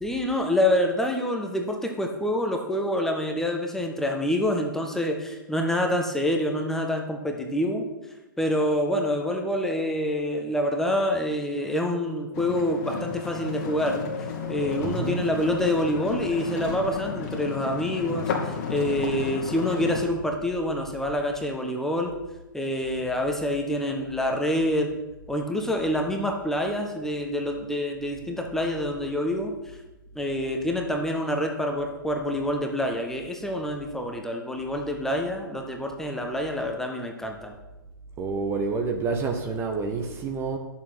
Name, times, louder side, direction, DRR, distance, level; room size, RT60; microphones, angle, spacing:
voice 1, 0.0-7.9 8.4-14.0 14.5-22.1 22.5-24.9 25.3-29.5 30.1-37.5, left 1 dB, 5° left, 2 dB, 1.3 m, -27 dB
sound 1, 12.3-20.0, left 5 dB, 45° left, 2.2 m, -32 dB
voice 2, 14.8-15.2 38.2-40.6, right 4 dB, 20° right, 4 dB, 1.2 m, -28 dB
10.5 x 7.2 x 6.2 m, 1.0 s
figure-of-eight pair, 120°, 12 cm